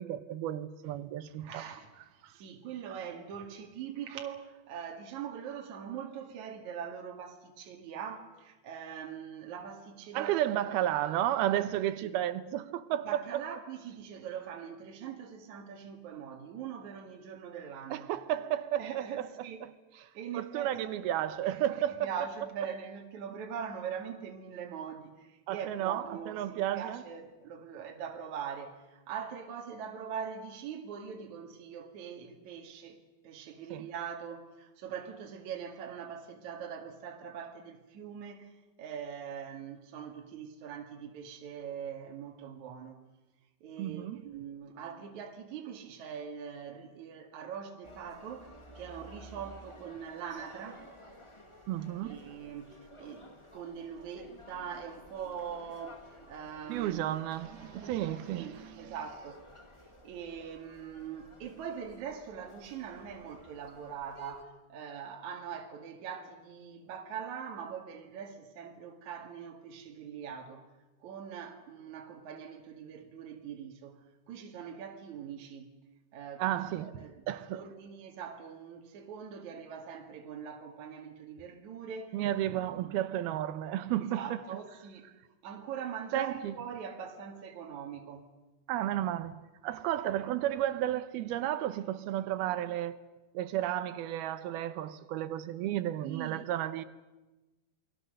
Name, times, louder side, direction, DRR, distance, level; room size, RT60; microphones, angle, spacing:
voice 1, 0.0-1.6 2.2-2.3 10.1-13.5 17.9-19.3 19.6-19.7 20.3-22.1 25.5-27.0 33.7-33.9 43.8-44.3 51.7-52.2 56.7-58.9 76.4-77.7 82.1-84.4 86.1-86.5 88.7-93.0 93.3-96.8, right 12 dB, 85° right, 2.9 m, -33 dB
voice 2, 1.4-10.3 12.0-12.1 13.0-18.1 18.8-19.6 19.9-20.9 21.5-21.6 22.0-38.5 38.8-43.0 43.6-50.9 52.0-57.1 57.7-59.5 60.0-70.6 71.0-74.0 74.3-75.7 76.1-77.2 77.5-82.2 82.5-82.9 84.1-85.1 85.4-88.3 96.0-96.5, right 7 dB, 55° right, 3.2 m, -42 dB
sound 1, 47.8-64.4, left 1 dB, 35° left, 0.4 m, -54 dB
28.5 x 22.0 x 6.7 m
omnidirectional pair, 4.4 m